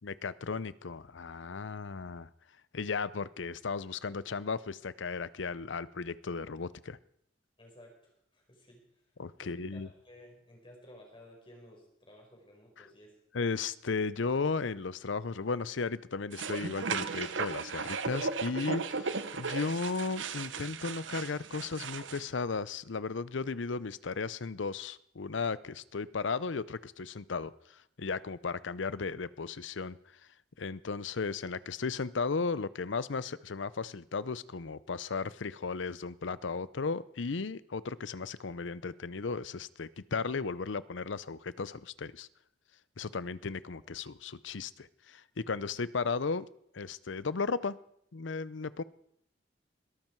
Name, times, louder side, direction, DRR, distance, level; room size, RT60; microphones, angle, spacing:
voice 1, 0.0-2.3 2.7-7.0 9.2-9.9 13.3-30.0 30.6-42.3 43.0-46.5 46.7-47.8 48.1-48.8, left 4 dB, 75° left, 18 dB, 0.6 m, -35 dB
voice 2, 7.6-9.1 9.4-13.2 43.7-43.9, equal, 25° left, 0 dB, 4.9 m, -55 dB
sound 1, 16.3-22.2, right 5 dB, 80° right, 1.0 m, -36 dB
21.0 x 13.0 x 4.6 m, 0.71 s
head